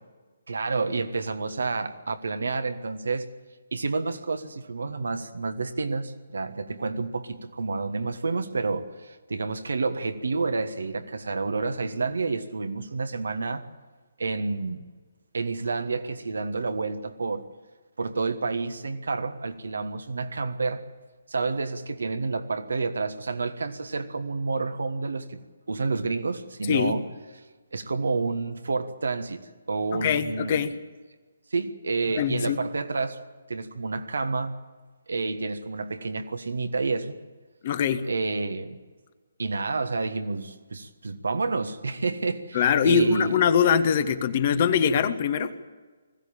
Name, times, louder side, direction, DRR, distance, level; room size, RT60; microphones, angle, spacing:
voice 1, 0.5-3.3 3.7-13.7 14.2-14.9 15.3-17.5 18.0-20.8 21.3-25.4 25.7-27.0 27.7-30.6 31.5-33.2 33.5-34.5 35.1-37.2 38.0-38.8 39.4-43.4, right 3 dB, 65° right, 9 dB, 1.5 m, -29 dB
voice 2, 29.9-30.7 32.2-32.6 37.6-38.1 42.5-45.5, left 7 dB, 40° left, 11 dB, 1.3 m, -23 dB
20.5 x 16.0 x 8.9 m, 1.3 s
figure-of-eight pair, 135°, 0 cm